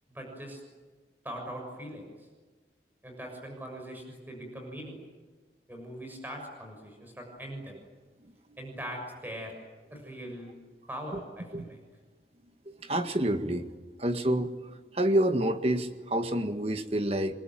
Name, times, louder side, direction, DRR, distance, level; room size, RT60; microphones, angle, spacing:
voice 1, 0.1-0.6 1.2-2.1 3.0-5.0 5.7-7.8 8.6-9.5 9.9-10.5 10.9-11.8, equal, 10° right, 2 dB, 6.7 m, -41 dB
voice 2, 8.2-8.6 9.9-10.1 11.1-11.2 11.5-11.7 12.7-13.7 14.0-17.3, right 1 dB, 35° right, 8 dB, 1.8 m, -29 dB
28.0 x 22.5 x 9.2 m, 1.4 s
head